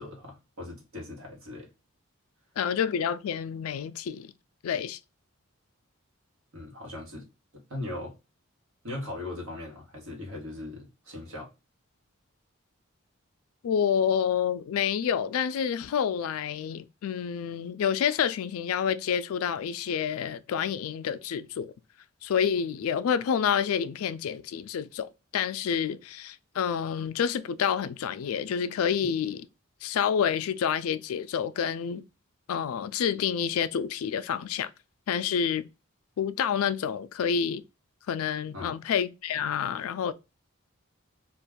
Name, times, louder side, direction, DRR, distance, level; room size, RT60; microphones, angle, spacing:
voice 1, 0.0-1.7 6.5-7.3 7.5-8.1 8.8-11.5 38.5-38.8, left 2 dB, 80° right, 1.2 m, -39 dB
voice 2, 2.6-4.3 4.6-5.0 13.6-21.7 22.2-29.5 29.8-32.0 32.5-34.7 35.1-35.7 36.2-37.6 38.1-40.1, left 7 dB, 80° left, 0.3 m, -28 dB
2.5 x 2.2 x 3.4 m
head